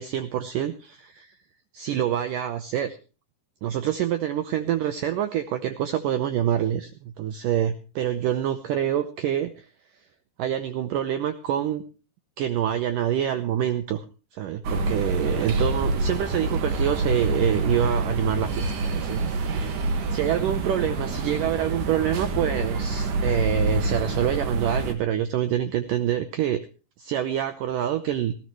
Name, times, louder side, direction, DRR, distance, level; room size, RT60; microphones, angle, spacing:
voice 1, 0.0-1.3 1.7-3.0 3.6-9.7 10.4-11.8 12.4-14.0 14.3-19.7 20.1-26.6 27.0-28.3, right 10 dB, 85° right, 10 dB, 1.8 m, -26 dB
sound 1, 14.6-24.9, right 2 dB, 55° right, 2.9 m, -26 dB
19.0 x 15.0 x 3.1 m, 0.33 s
omnidirectional pair, 4.9 m